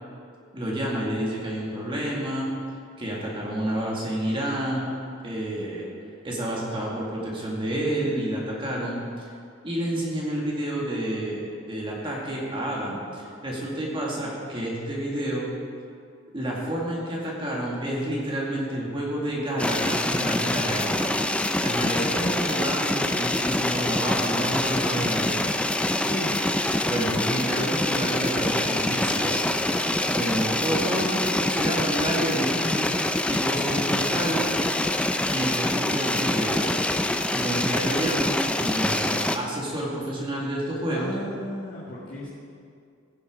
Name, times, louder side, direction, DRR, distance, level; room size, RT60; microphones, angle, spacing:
voice 1, 0.5-2.5 3.0-4.9 5.2-5.9 6.2-9.3 9.6-15.5 16.3-20.9 21.3-25.4 26.8-29.4 30.1-34.4 35.3-36.8 37.3-41.1, right 1 dB, 25° right, -4 dB, 2.1 m, -29 dB
sound 1, 19.6-39.4, left 1 dB, 5° left, 0.4 m, -25 dB
voice 2, 26.0-26.4 40.9-42.3, left 1 dB, 45° left, -8 dB, 1.9 m, -34 dB
16.0 x 7.1 x 5.0 m, 2.4 s
head